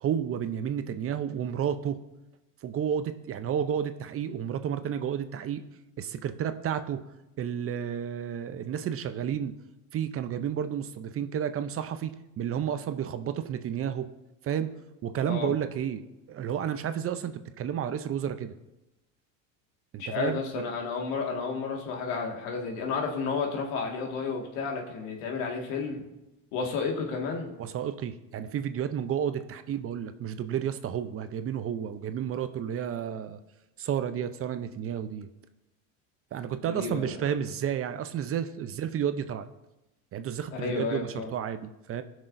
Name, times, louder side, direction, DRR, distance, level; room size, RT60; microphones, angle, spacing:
voice 1, 0.0-2.0 2.6-5.6 6.0-7.0 7.4-9.5 9.9-14.1 14.4-14.7 15.0-18.5 19.9-20.6 27.6-33.4 33.8-35.3 36.3-39.5 40.1-42.0, right 9 dB, 35° right, 10 dB, 0.6 m, -31 dB
voice 2, 20.0-26.0 26.5-27.5 36.7-37.2 40.5-41.3, left 5 dB, 80° left, 1 dB, 1.9 m, -31 dB
18.0 x 6.3 x 2.6 m, 0.99 s
supercardioid pair, 105°, 40 cm